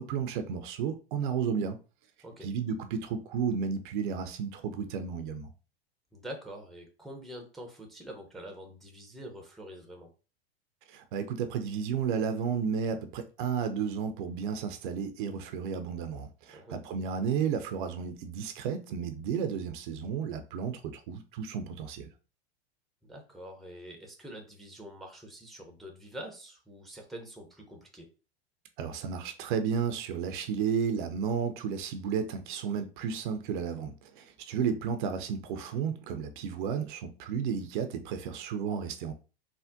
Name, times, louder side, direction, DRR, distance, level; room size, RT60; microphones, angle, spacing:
voice 1, 0.0-1.8 2.4-5.5 10.9-22.1 28.8-39.1, right 7 dB, 50° right, 0.5 m, -32 dB
voice 2, 6.1-10.1 16.5-16.8 23.0-28.1, right 1 dB, ahead, 0.5 m, -45 dB
3.4 x 2.1 x 2.5 m
hypercardioid pair, 95°, 32 cm